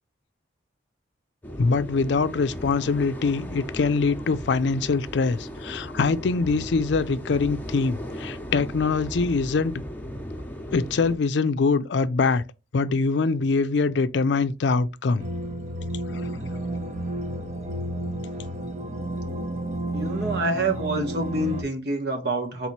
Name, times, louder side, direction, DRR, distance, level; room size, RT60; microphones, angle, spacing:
sound 1, 1.4-11.1, equal, 10° left, 0.8 m, -36 dB
voice 1, 1.6-9.8 10.7-12.4 12.7-15.2 15.9-16.4, left 4 dB, 70° left, 0.4 m, -23 dB
sound 2, 15.2-21.6, right 1 dB, 40° right, 0.8 m, -31 dB
voice 2, 19.9-22.7, right 2 dB, 60° right, 1.2 m, -27 dB
3.9 x 3.0 x 4.1 m
head